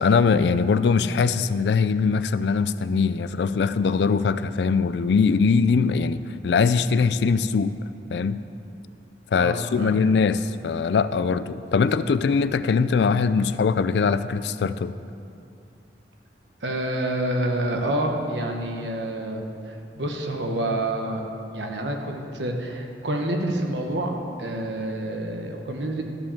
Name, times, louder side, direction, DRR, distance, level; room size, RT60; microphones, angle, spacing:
voice 1, 0.0-7.7 8.1-8.4 9.3-14.9, left 5 dB, 75° left, 14 dB, 0.4 m, -21 dB
voice 2, 9.4-10.0 16.6-21.2 21.5-26.0, right 1 dB, 90° right, 2 dB, 1.2 m, -28 dB
13.0 x 5.2 x 7.1 m, 2.6 s
head